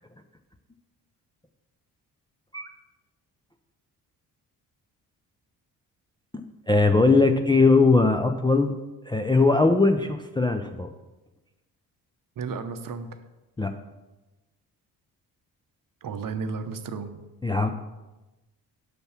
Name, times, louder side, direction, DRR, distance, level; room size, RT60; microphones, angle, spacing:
voice 1, 6.3-8.8 9.1-10.9 13.6-13.7 17.4-17.7, left 3 dB, 10° left, 5 dB, 0.5 m, -20 dB
voice 2, 12.4-13.1 16.0-17.2, right 5 dB, 45° right, 9 dB, 0.8 m, -33 dB
6.0 x 5.4 x 5.9 m, 1.1 s
hypercardioid pair, 45°, 48 cm